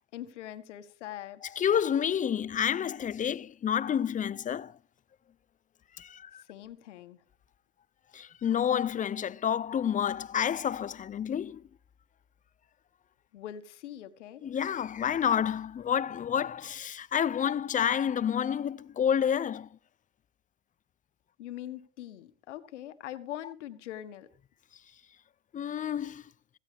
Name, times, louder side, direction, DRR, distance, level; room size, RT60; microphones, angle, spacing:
voice 1, 0.0-1.5 6.3-7.2 13.3-14.4 21.4-24.3, left 12 dB, 85° left, 1.7 m, -43 dB
voice 2, 1.6-4.8 6.0-6.4 8.1-11.6 14.4-19.7 25.5-26.2, left 8 dB, 20° left, 0.6 m, -29 dB
16.5 x 15.5 x 3.5 m
supercardioid pair, 105°, 35 cm